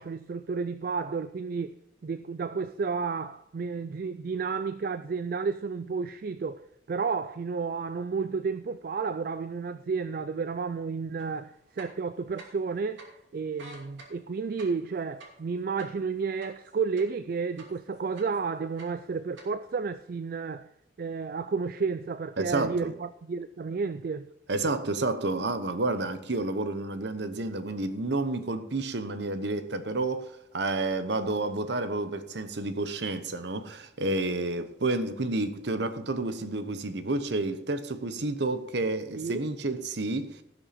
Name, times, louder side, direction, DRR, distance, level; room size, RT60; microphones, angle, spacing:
voice 1, 0.0-1.8 2.0-13.0 13.3-20.7 21.0-24.3 39.2-39.5, right 5 dB, 50° right, 0.3 m, -32 dB
sound 1, 11.2-11.3 11.7-12.7 13.0-13.1 13.5-17.2 17.6-18.4 18.7-19.5, right 3 dB, 90° right, 2.6 m, -49 dB
voice 2, 22.4-22.9 24.5-40.4, right 2 dB, 65° right, 0.9 m, -30 dB
17.5 x 6.3 x 4.3 m
head